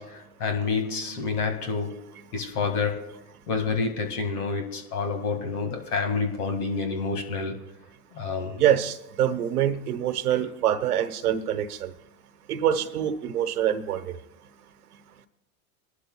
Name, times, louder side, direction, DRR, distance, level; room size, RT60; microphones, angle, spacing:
voice 1, 0.0-2.0 2.3-3.1 3.5-7.6 8.1-8.6, left 4 dB, 90° left, 2.1 m, -28 dB
voice 2, 8.6-11.9 12.5-14.1, right 10 dB, 90° right, 1.1 m, -25 dB
21.5 x 12.0 x 2.3 m
hypercardioid pair, 105°, 44 cm